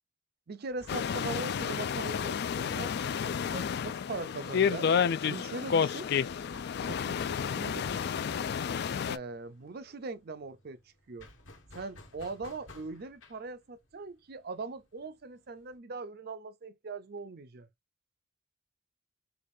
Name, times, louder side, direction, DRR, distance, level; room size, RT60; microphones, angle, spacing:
voice 1, 0.5-4.9 5.2-6.1 6.8-7.2 7.5-7.9 9.1-10.8 11.1-11.3 11.7-17.7, right 3 dB, 50° right, 0.5 m, -41 dB
sound 1, 0.7-4.1 4.4-4.5 4.8-15.8, left 2 dB, 70° left, 1.2 m, -55 dB
sound 2, 0.9-9.2, left 7 dB, 55° left, 0.3 m, -30 dB
4.9 x 2.3 x 2.6 m
head